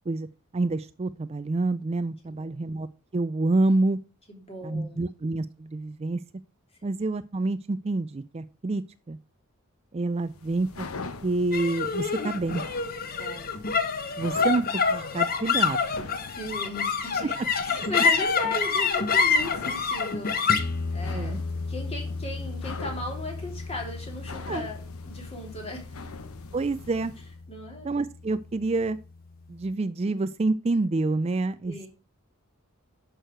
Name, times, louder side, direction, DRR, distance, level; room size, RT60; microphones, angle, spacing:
voice 1, 0.5-2.9 3.1-4.0 4.6-6.2 6.8-9.2 9.9-10.9 11.2-12.6 14.2-15.8 21.1-21.4 24.5-24.7 26.5-27.1 27.8-29.0 29.5-31.9, right 2 dB, 30° right, 13 dB, 0.4 m, -27 dB
voice 2, 4.3-5.0 13.2-13.5 16.2-17.3 17.6-21.4 21.7-24.8 25.0-26.0 27.5-27.9 31.6-31.9, left 1 dB, 30° left, 1 dB, 3.2 m, -37 dB
sound 1, 10.2-27.4, left 3 dB, 85° left, 1.1 m, -44 dB
sound 2, 11.5-28.1, left 5 dB, 45° left, 1.0 m, -28 dB
11.0 x 6.3 x 4.6 m, 0.32 s
head